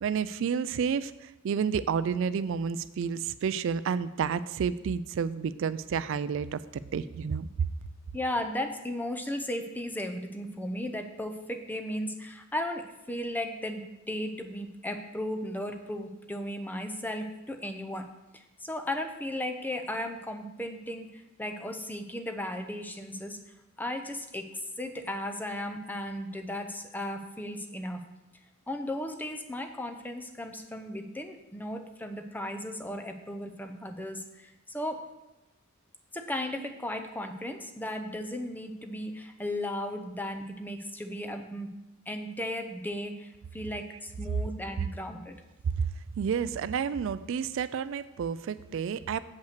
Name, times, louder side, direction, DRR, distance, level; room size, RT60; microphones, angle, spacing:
voice 1, 0.0-7.5 46.2-49.2, right 6 dB, 65° right, 15 dB, 0.3 m, -30 dB
voice 2, 8.1-18.1 18.3-23.4 23.8-28.0 28.7-35.1 36.1-41.7 42.1-45.4, left 1 dB, 10° left, 5 dB, 0.7 m, -36 dB
7.9 x 5.5 x 6.6 m, 0.95 s
head